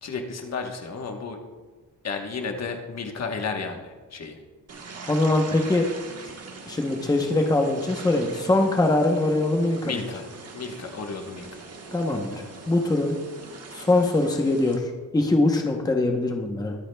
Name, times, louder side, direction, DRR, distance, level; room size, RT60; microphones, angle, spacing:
voice 1, 0.0-1.4 2.0-4.4 9.8-10.3 10.5-11.7, left 4 dB, 50° left, 3 dB, 1.2 m, -33 dB
sound 1, 4.7-14.8, right 4 dB, 45° right, 1.2 m, -42 dB
voice 2, 5.1-5.8 6.7-10.0 11.9-13.1 13.7-16.8, left 2 dB, 10° left, 2 dB, 0.8 m, -22 dB
22.5 x 8.5 x 2.2 m, 1.4 s
wide cardioid pair, 175°, 35 cm